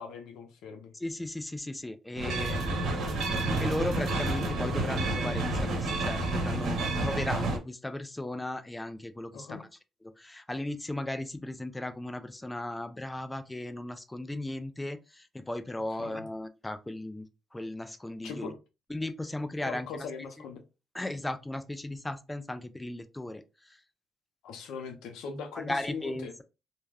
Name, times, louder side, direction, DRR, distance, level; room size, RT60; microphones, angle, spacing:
voice 1, 0.0-0.9 2.3-2.8 9.3-9.6 16.0-16.2 18.2-18.6 19.6-20.6 24.4-26.3, left 5 dB, 85° left, 0.6 m, -40 dB
voice 2, 0.9-2.7 3.6-9.7 10.2-18.5 18.9-20.1 20.9-23.8 25.5-26.4, left 1 dB, 10° left, 0.4 m, -36 dB
sound 1, 2.2-7.6, right 2 dB, 75° right, 0.8 m, -30 dB
2.3 x 2.2 x 3.3 m
cardioid pair, 90°, 0 cm